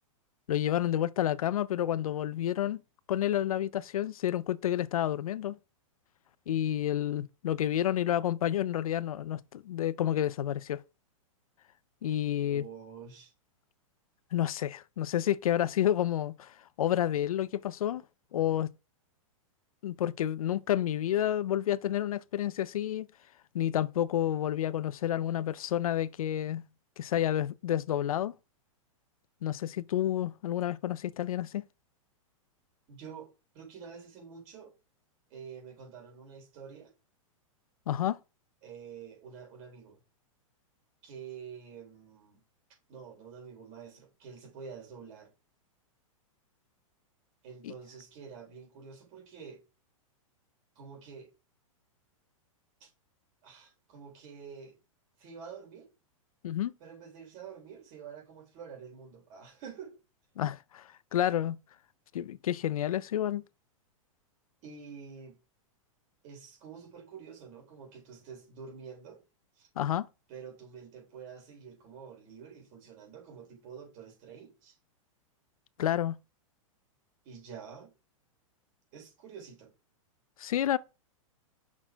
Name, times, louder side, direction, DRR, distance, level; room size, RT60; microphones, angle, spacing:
voice 1, 0.5-2.8 3.1-5.6 6.5-10.8 12.0-12.6 14.3-18.0 18.3-18.7 19.8-23.1 23.5-26.6 27.0-28.3 29.4-31.6 37.9-38.2 47.6-47.7 56.4-56.7 60.4-61.6 62.1-63.4 69.8-70.1 75.8-76.2 80.4-80.8, left 11 dB, 85° left, 0.5 m, -30 dB
voice 2, 12.5-13.3 32.9-33.3 33.5-34.7 35.3-36.9 38.6-40.0 41.0-42.4 42.9-45.3 47.4-49.6 50.8-51.3 52.8-52.9 53.4-54.8 55.2-55.9 56.8-60.0 64.6-65.4 66.2-69.2 69.6-69.7 70.3-74.8 77.2-77.9 78.9-79.7, right 6 dB, 40° right, 3.8 m, -48 dB
6.0 x 4.3 x 4.5 m
hypercardioid pair, 140°, 18 cm